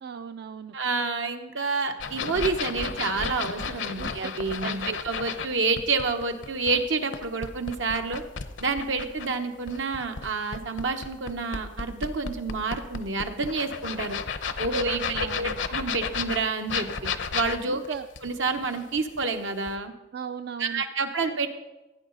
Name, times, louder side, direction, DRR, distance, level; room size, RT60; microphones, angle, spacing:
voice 1, 0.0-0.8 4.0-4.1 4.6-5.0 14.7-15.6 17.7-18.1 20.1-20.8, right 6 dB, 55° right, 10 dB, 0.3 m, -37 dB
voice 2, 0.7-8.2 8.6-14.2 14.6-17.8 18.2-19.9 20.6-21.5, right 4 dB, 80° right, 5 dB, 1.2 m, -29 dB
sound 1, 2.0-5.5 5.8-9.3 9.7-19.3 19.7-19.8, left 5 dB, 70° left, 0.7 m, -33 dB
16.5 x 9.5 x 4.0 m, 1.0 s
head